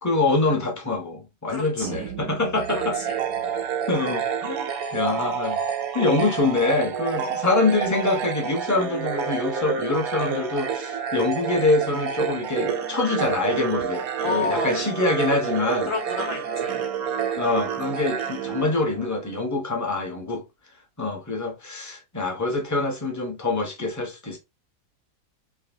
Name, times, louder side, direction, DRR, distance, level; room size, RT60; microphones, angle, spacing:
voice 1, 0.0-3.0 3.9-5.6 5.9-15.9 17.4-20.4 21.0-24.4, left 2 dB, 15° left, 0.8 m, -25 dB
voice 2, 1.5-2.1 2.7-3.2 7.1-7.4 14.2-14.8 15.8-16.9, left 4 dB, 70° left, 2.4 m, -31 dB
sound 1, 1.8-4.3, right 10 dB, 85° right, 1.3 m, -39 dB
sound 2, 2.6-19.3, right 7 dB, 65° right, 1.2 m, -29 dB
4.8 x 3.0 x 2.8 m
omnidirectional pair, 1.7 m